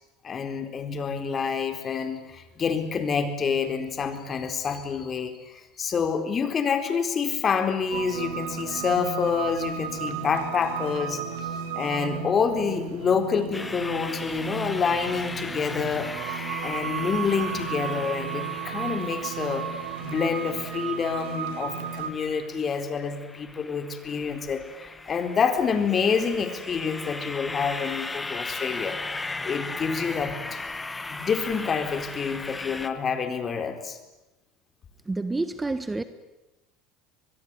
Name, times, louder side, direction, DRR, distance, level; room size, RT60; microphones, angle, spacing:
voice 1, 0.2-11.2 11.8-16.1 16.6-19.7 20.0-29.0 29.4-30.6 31.1-34.0, left 6 dB, 35° left, 8 dB, 4.1 m, -27 dB
sound 1, 7.9-22.1, right 8 dB, 75° right, 2.4 m, -34 dB
sound 2, 13.5-32.9, left 3 dB, 15° left, 1.8 m, -37 dB
voice 2, 35.1-36.0, right 2 dB, 15° right, 12 dB, 1.5 m, -28 dB
24.5 x 21.5 x 9.8 m, 1.0 s
hypercardioid pair, 85°, 0 cm